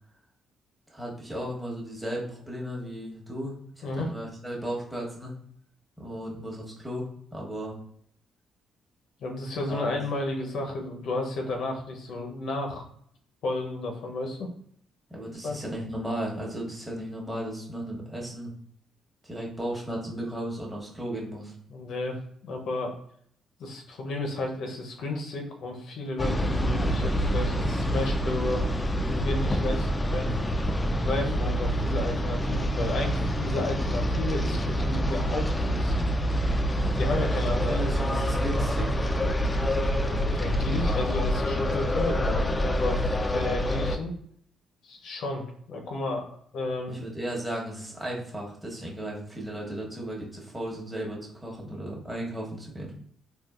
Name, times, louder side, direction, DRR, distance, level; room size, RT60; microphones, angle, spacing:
voice 1, 0.9-5.3 6.0-7.8 9.7-9.9 15.1-18.5 19.2-21.5 37.7-39.0 46.9-52.9, right 1 dB, 10° right, -3 dB, 1.0 m, -35 dB
voice 2, 9.2-12.8 13.4-14.5 15.4-15.6 21.7-22.2 22.4-22.9 23.6-28.6 29.1-30.3 31.0-35.9 36.9-37.8 40.3-44.1 44.8-47.0, left 2 dB, 70° left, 2 dB, 0.6 m, -32 dB
sound 1, 26.2-44.0, equal, 20° left, 0.3 m, -26 dB
3.6 x 2.4 x 2.4 m, 0.64 s
cardioid pair, 90°, 0 cm